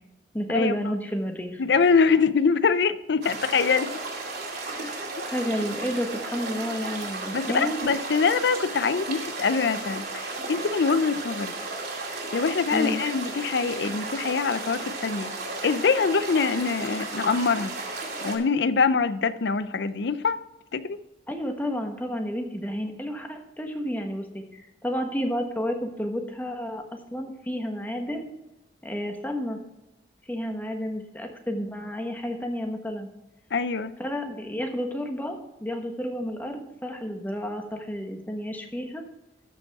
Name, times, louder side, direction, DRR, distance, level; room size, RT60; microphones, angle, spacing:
voice 1, 0.3-1.6 4.6-7.9 12.7-13.0 21.3-28.3 28.8-29.6 30.3-33.1 34.0-39.0, equal, 10° left, 1.3 m, -31 dB
voice 2, 1.6-3.9 7.3-11.5 12.3-15.3 15.6-17.7 18.2-20.4 20.7-21.0 33.5-33.9, left 5 dB, 65° left, 0.5 m, -24 dB
sound 1, 3.2-18.4, right 3 dB, 65° right, 2.5 m, -34 dB
13.5 x 5.4 x 4.7 m
head